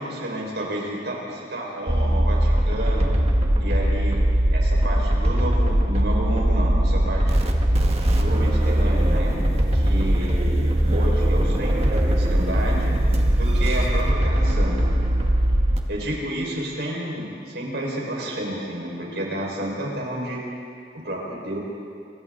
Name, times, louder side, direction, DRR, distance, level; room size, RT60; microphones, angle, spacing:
voice 1, 0.0-3.1 3.6-4.2 4.5-7.4 8.1-9.3 9.7-10.4 10.9-13.0 13.3-14.8 15.9-20.4 21.0-21.6, right 1 dB, 70° right, -2 dB, 5.2 m, -30 dB
sound 1, 1.9-15.8, right 1 dB, 35° right, 1.7 m, -20 dB
29.5 x 23.0 x 4.0 m, 2.4 s
head